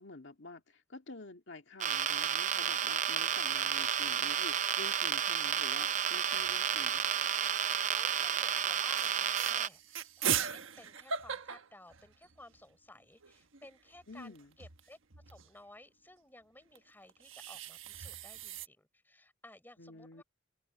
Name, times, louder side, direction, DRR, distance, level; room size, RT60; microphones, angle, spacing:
voice 1, 0.0-7.0 14.1-14.5 19.8-20.2, left 2 dB, 60° left, 2.2 m, -49 dB
sound 1, 1.8-9.7, right 9 dB, 35° right, 0.5 m, -31 dB
sound 2, 3.3-4.0 4.3-4.4 4.6-5.2 6.2-7.4 8.0-8.2 8.6-8.7 8.9-12.6 12.9-13.0 13.2-15.5 16.7-18.7, right 8 dB, 75° right, 1.3 m, -40 dB
voice 2, 7.9-15.0 15.3-20.2, left 1 dB, 10° left, 3.9 m, -56 dB
open air
head